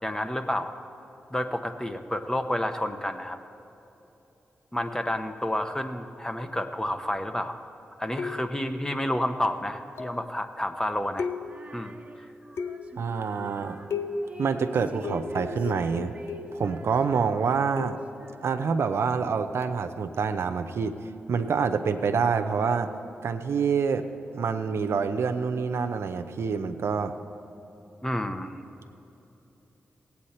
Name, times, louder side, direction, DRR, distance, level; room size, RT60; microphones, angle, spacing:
voice 1, 0.0-0.7 1.3-3.4 4.7-7.6 8.0-11.3 11.7-12.3 28.0-28.6, left 1 dB, 15° left, 7 dB, 1.0 m, -30 dB
sound 1, 8.2-8.7 10.0-10.3 11.2-11.8 12.6-13.1 13.9-14.4 15.0-16.7 17.8-18.2 19.6-19.9, left 5 dB, 70° left, 0.7 m, -35 dB
Female singing, 11.4-18.8, right 2 dB, 30° right, 1.2 m, -46 dB
voice 2, 13.0-13.8 14.4-16.1 16.5-18.0 18.4-20.9 21.3-22.9 23.2-24.0 24.3-27.1, right 5 dB, 70° right, 8 dB, 0.6 m, -26 dB
17.5 x 8.5 x 4.3 m, 3.0 s
supercardioid pair, 45°, 5 cm